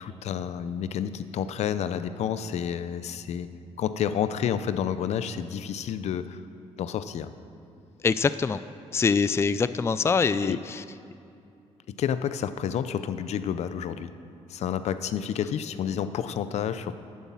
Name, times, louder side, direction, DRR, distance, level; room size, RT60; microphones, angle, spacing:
voice 1, 0.0-3.5 3.8-6.4 6.8-7.3 10.4-10.6 11.9-14.1 14.5-16.9, left 8 dB, 70° left, 13 dB, 0.6 m, -30 dB
voice 2, 8.0-8.6 8.9-10.8, left 5 dB, 20° left, 14 dB, 0.4 m, -24 dB
11.0 x 9.6 x 7.3 m, 2.5 s
cardioid pair, 85°, 12 cm